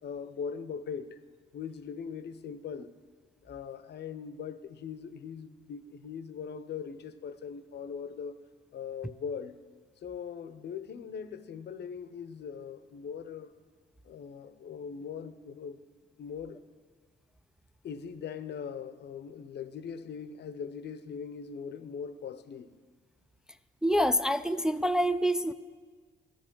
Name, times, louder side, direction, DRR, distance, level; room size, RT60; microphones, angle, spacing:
voice 1, 0.0-1.2 1.5-2.9 3.4-8.4 8.7-9.5 10.0-13.5 14.0-15.8 16.2-16.6 17.8-22.7, left 6 dB, 60° left, 0.7 m, -40 dB
voice 2, 23.8-25.5, equal, 5° right, 0.3 m, -26 dB
13.5 x 10.0 x 6.1 m
cardioid pair, 90°, 20 cm